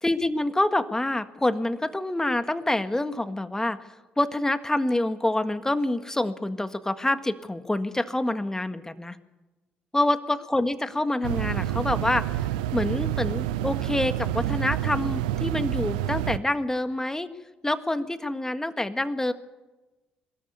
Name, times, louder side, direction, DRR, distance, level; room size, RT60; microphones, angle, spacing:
voice 1, 0.0-9.2 9.9-12.3 12.7-17.3 17.6-19.3, left 1 dB, 10° left, 10 dB, 1.7 m, -27 dB
sound 1, 11.2-16.4, right 13 dB, 85° right, 0.6 m, -28 dB
22.0 x 13.5 x 9.7 m, 1.1 s
hypercardioid pair, 50°, 4 cm